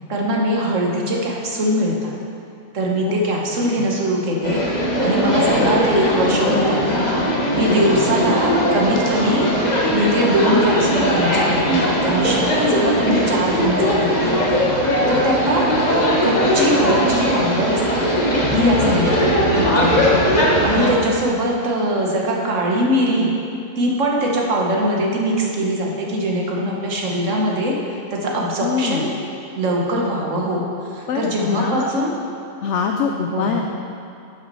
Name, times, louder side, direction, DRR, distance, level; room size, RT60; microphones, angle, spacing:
voice 1, 0.1-2.1 2.7-4.6 5.0-7.0 7.5-9.5 9.9-14.6 15.1-15.7 16.2-18.1 18.5-20.1 20.6-23.3 23.8-27.8 28.1-29.1 29.6-30.6 30.9-32.1 33.3-33.6, equal, 55° right, -2 dB, 1.5 m, -21 dB
sound 1, 4.4-20.9, equal, 30° left, 1.2 m, -19 dB
voice 2, 18.5-19.2 28.6-29.1 31.1-31.9 32.6-33.6, left 6 dB, 65° left, 3 dB, 0.7 m, -23 dB
10.5 x 6.0 x 4.1 m, 2.5 s
omnidirectional pair, 1.6 m